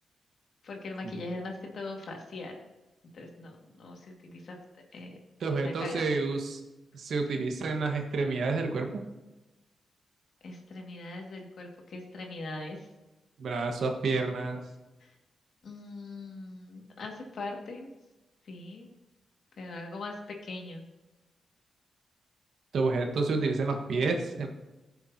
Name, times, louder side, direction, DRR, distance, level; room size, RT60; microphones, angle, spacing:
voice 1, 0.6-2.6 3.1-4.6 4.9-5.2 5.5-6.1 10.4-12.8 15.6-17.9 18.5-18.9 19.6-20.1 20.4-20.8, left 2 dB, 70° left, 1 dB, 2.0 m, -41 dB
voice 2, 5.4-6.6 6.9-9.0 13.4-14.6 22.7-24.5, right 3 dB, 75° right, 3 dB, 1.4 m, -29 dB
15.0 x 6.9 x 2.8 m, 1.1 s
cardioid pair, 70°, 0 cm